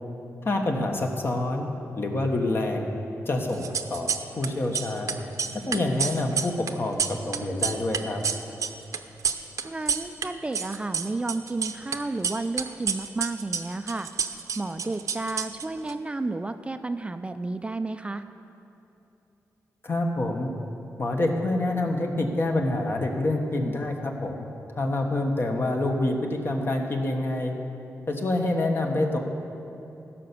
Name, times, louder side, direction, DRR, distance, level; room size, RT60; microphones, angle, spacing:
voice 1, 0.4-1.7 2.0-2.9 3.2-4.1 4.4-5.1 5.7-8.2 19.8-20.5 21.0-24.5 24.8-27.5 28.1-29.2, left 2 dB, 45° left, 3 dB, 1.3 m, -27 dB
sound 1, 3.5-4.5 4.7-10.3 10.5-12.0 12.2-15.9, right 6 dB, 70° right, 0.7 m, -29 dB
voice 2, 9.6-18.3, right 2 dB, 20° right, 9 dB, 0.4 m, -32 dB
15.5 x 5.9 x 6.9 m, 2.9 s
cardioid pair, 90°, 6 cm